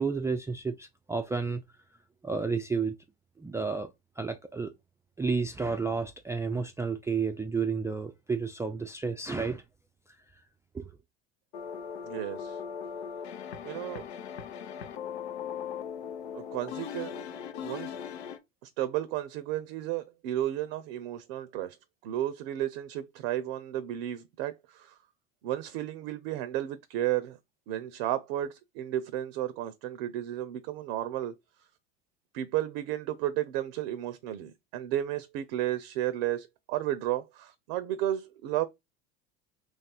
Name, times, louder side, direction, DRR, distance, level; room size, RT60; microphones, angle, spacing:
voice 1, 0.0-1.6 2.2-3.0 3.4-3.9 4.2-4.7 5.2-9.6 10.7-10.9, right 4 dB, 10° right, 0.3 m, -31 dB
sound 1, 11.5-18.4, left 8 dB, 85° left, 0.6 m, -39 dB
voice 2, 12.0-12.6 13.6-14.1 16.3-18.0 18.6-21.8 22.0-25.0 25.4-27.4 27.7-31.3 32.3-38.7, right 13 dB, 65° right, 0.6 m, -33 dB
3.1 x 2.4 x 4.2 m
hypercardioid pair, 85°, 31 cm